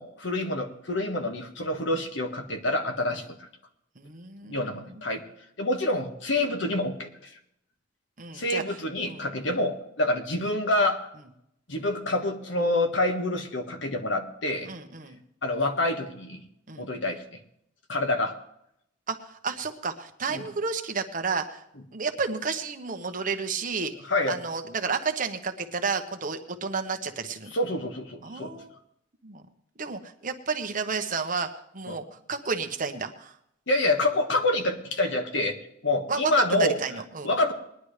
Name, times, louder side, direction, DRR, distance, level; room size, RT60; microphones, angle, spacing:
voice 1, 0.0-3.5 4.4-5.2 5.6-7.1 8.3-11.0 11.7-14.7 15.4-16.4 16.8-17.2 17.9-18.3 20.3-20.4 24.1-24.4 27.5-28.6 31.9-32.0 33.7-35.6 35.8-36.8 37.2-37.5, left 2 dB, 65° left, 5 dB, 1.7 m, -27 dB
voice 2, 4.0-4.7 8.2-9.5 14.7-15.2 16.7-16.9 19.1-21.6 21.9-23.9 24.3-27.5 28.2-28.7 29.2-29.4 29.8-31.5 31.7-32.0 32.3-33.4 36.1-37.3, right 5 dB, 45° right, 6 dB, 1.2 m, -31 dB
20.5 x 11.0 x 3.3 m, 0.75 s
head